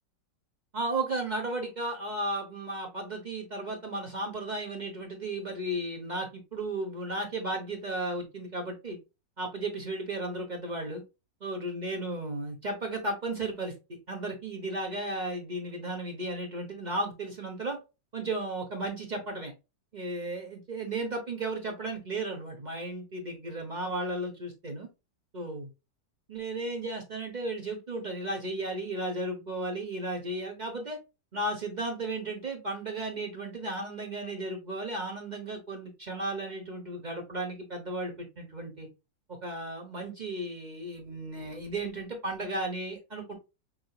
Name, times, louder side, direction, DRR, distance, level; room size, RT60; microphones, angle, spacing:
voice 1, 0.7-9.0 9.4-11.0 11.4-13.7 14.1-17.8 18.1-19.5 19.9-24.9 25.3-25.7 26.3-31.0 31.3-38.9 39.3-43.3, right 2 dB, 35° right, 2 dB, 0.7 m, -34 dB
6.0 x 3.2 x 2.3 m, 0.27 s
omnidirectional pair, 2.0 m